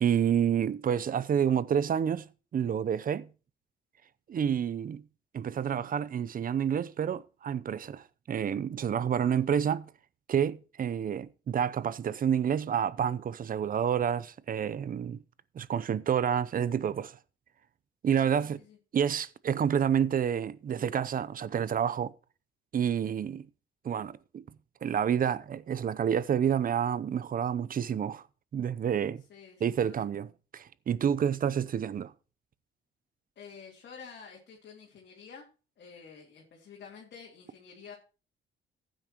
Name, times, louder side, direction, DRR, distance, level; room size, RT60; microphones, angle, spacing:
voice 1, 0.0-3.3 4.3-5.0 5.3-9.9 10.3-15.2 15.5-17.2 18.0-18.6 18.9-22.1 22.7-23.5 23.8-24.4 24.8-28.2 28.5-29.2 29.6-30.3 30.5-32.1, right 8 dB, 45° right, 0.6 m, -29 dB
voice 2, 9.3-9.8 18.1-18.8 29.3-30.1 33.3-35.4 35.8-38.0, left 6 dB, 60° left, 3.1 m, -50 dB
15.0 x 9.0 x 3.0 m
cardioid pair, 90°, 20 cm